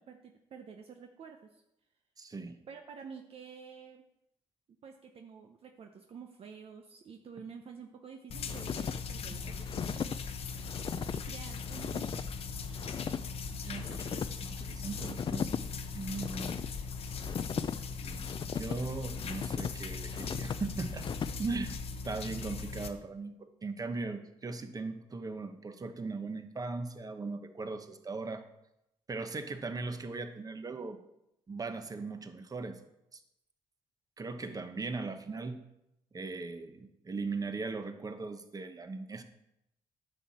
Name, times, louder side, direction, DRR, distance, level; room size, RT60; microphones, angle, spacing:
voice 1, 0.0-1.6 2.7-4.0 4.8-10.1 11.1-12.5 34.5-34.6, right 6 dB, 55° right, 4 dB, 0.8 m, -49 dB
voice 2, 2.2-2.6 9.4-9.7 13.5-15.5 15.9-16.6 18.0-18.2 18.6-21.1 21.4-21.8 22.0-28.4 29.1-31.0 31.5-32.8 33.1-33.2 34.2-35.6 36.1-39.2, right 3 dB, 30° right, 8 dB, 1.2 m, -39 dB
sound 1, 8.3-22.9, left 5 dB, 60° left, 1.0 m, -40 dB
sound 2, 8.5-21.7, left 7 dB, 45° left, 0.5 m, -39 dB
9.9 x 6.3 x 4.3 m, 0.83 s
supercardioid pair, 65°, 12 cm